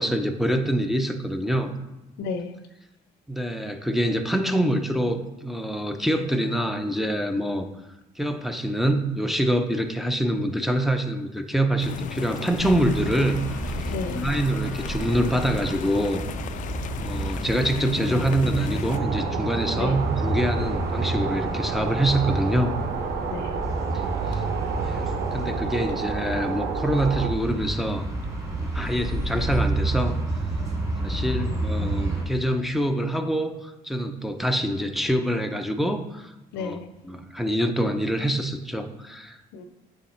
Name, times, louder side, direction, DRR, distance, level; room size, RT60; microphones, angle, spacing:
voice 1, 0.0-1.7 3.3-7.7 8.2-13.4 13.7-16.2 17.0-22.7 23.9-24.0 24.3-24.4 24.8-28.0 28.6-30.2 31.0-36.8 37.0-39.4, right 1 dB, ahead, 5 dB, 0.6 m, -25 dB
voice 2, 2.2-2.5 13.9-14.2 19.7-20.0 23.3-23.6 31.1-32.0 36.5-36.9 39.5-39.6, left 4 dB, 85° left, 9 dB, 0.7 m, -34 dB
sound 1, 11.8-19.0, left 9 dB, 50° left, 0.4 m, -35 dB
sound 2, 12.5-32.2, right 2 dB, 20° right, 2.2 m, -30 dB
sound 3, 18.9-27.3, right 6 dB, 75° right, 1.0 m, -31 dB
8.8 x 3.5 x 4.3 m, 0.94 s
cardioid pair, 110°, 17 cm